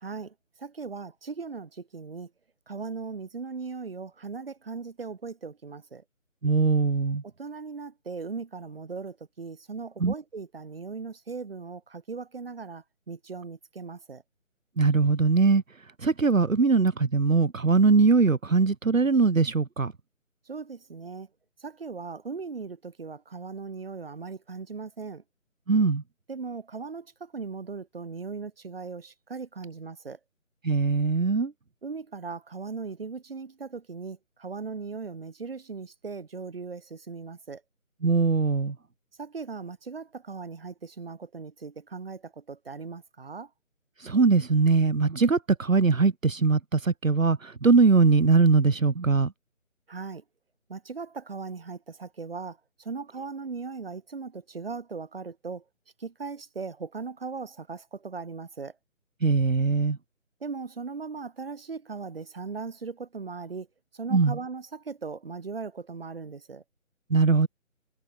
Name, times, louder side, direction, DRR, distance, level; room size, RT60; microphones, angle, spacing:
voice 1, 0.0-2.3 2.7-6.0 7.4-14.2 20.5-21.3 21.6-25.2 26.3-30.2 31.8-37.6 39.2-43.5 49.9-50.2 50.7-55.6 56.0-58.7 60.4-63.7 63.9-66.6, right 4 dB, 45° right, 1.7 m, -38 dB
voice 2, 6.4-7.2 10.0-10.1 14.8-15.6 16.0-19.9 25.7-26.0 30.6-31.5 38.0-38.7 44.0-49.3 59.2-60.0 64.1-64.4 67.1-67.5, right 4 dB, 75° right, 1.2 m, -21 dB
figure-of-eight pair, 155°, 40 cm